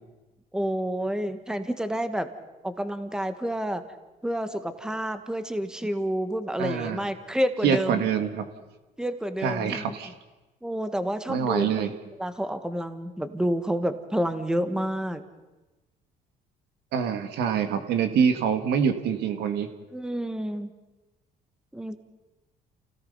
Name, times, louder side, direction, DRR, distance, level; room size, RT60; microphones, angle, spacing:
voice 1, 0.5-2.3 2.6-3.8 4.2-8.1 9.0-9.9 10.6-11.8 12.2-15.2 19.9-20.7 21.7-22.0, equal, 5° right, 9 dB, 1.3 m, -29 dB
voice 2, 6.6-7.0 7.6-8.4 9.4-10.1 11.3-11.9 16.9-19.7, right 7 dB, 80° right, 7 dB, 2.0 m, -25 dB
28.5 x 17.5 x 5.6 m, 1.1 s
cardioid pair, 110°, 17 cm